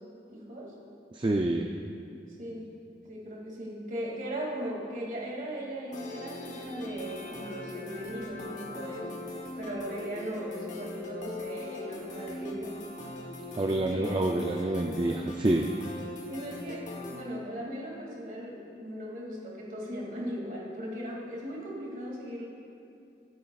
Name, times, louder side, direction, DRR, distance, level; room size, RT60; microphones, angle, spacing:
voice 1, 0.3-0.7 2.4-2.7 3.1-9.2 9.6-12.8 13.9-14.3 16.3-22.5, equal, 45° right, -3 dB, 2.4 m, -38 dB
voice 2, 1.1-1.7 13.5-15.7, right 2 dB, 25° right, 2 dB, 0.4 m, -27 dB
sound 1, 5.9-17.2, left 2 dB, 40° left, 1.1 m, -41 dB
23.0 x 9.3 x 2.4 m, 2.6 s
head